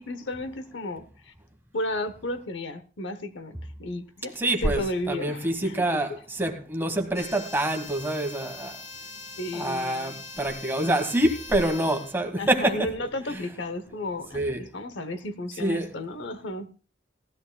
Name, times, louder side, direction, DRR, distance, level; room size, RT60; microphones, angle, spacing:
voice 1, 0.0-1.3 1.7-6.2 9.4-10.2 12.4-16.7, left 1 dB, 75° left, 0.9 m, -34 dB
voice 2, 4.4-8.8 9.5-12.9 14.3-14.6 15.6-15.9, right 1 dB, 10° right, 1.4 m, -26 dB
sound 1, 7.1-12.2, left 3 dB, 50° left, 3.7 m, -42 dB
17.5 x 13.5 x 2.3 m
head